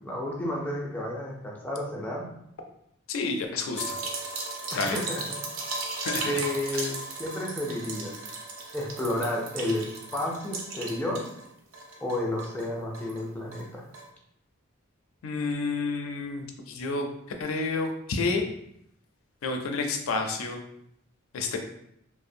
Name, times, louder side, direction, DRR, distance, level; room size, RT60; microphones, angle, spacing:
voice 1, 0.0-2.3 4.7-5.4 6.3-6.9 7.2-8.1 8.7-11.2 12.0-13.8, left 1 dB, 10° left, -3 dB, 0.4 m, -31 dB
voice 2, 3.1-4.0 4.8-5.0 6.0-6.3 15.2-17.1 17.4-18.4 19.4-20.6 21.3-21.6, left 3 dB, 85° left, 4 dB, 0.4 m, -29 dB
sound 1, 3.8-11.5 11.7-13.2 13.5-13.7 13.9-14.1, right 3 dB, 75° right, 0.5 m, -36 dB
2.5 x 2.0 x 2.6 m, 0.74 s
head